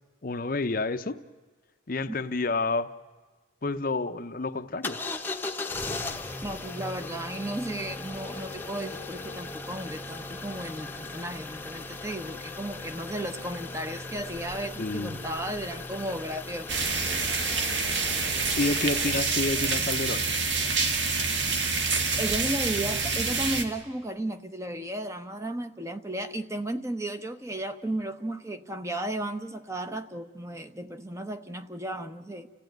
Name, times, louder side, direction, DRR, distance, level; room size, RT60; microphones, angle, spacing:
voice 1, 0.2-1.2 1.9-2.9 3.6-5.0 14.8-15.2 18.5-20.3, left 3 dB, 45° left, 10 dB, 0.6 m, -29 dB
sound 1, 4.8-19.2, left 3 dB, 10° left, 0.9 m, -38 dB
voice 2, 6.4-17.3 22.2-32.5, right 1 dB, 15° right, 9 dB, 0.8 m, -34 dB
sound 2, 16.7-23.6, right 4 dB, 65° right, 1.8 m, -27 dB
30.0 x 15.0 x 9.2 m, 1.4 s
head